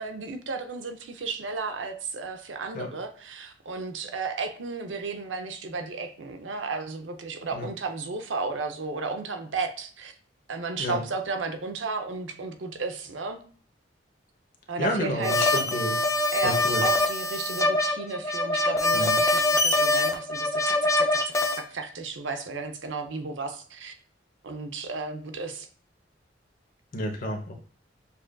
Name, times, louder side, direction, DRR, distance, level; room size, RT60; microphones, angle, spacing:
voice 1, 0.0-10.1 10.5-13.4 14.7-15.6 16.3-21.2 21.5-23.9 24.4-25.7, right 4 dB, 85° right, 6 dB, 0.6 m, -33 dB
voice 2, 14.8-16.0 16.4-16.8 18.9-19.2 26.9-27.5, left 1 dB, 50° left, 2 dB, 0.8 m, -30 dB
sound 1, 15.2-21.6, left 1 dB, 15° left, 0.5 m, -24 dB
6.8 x 2.5 x 2.2 m, 0.44 s
head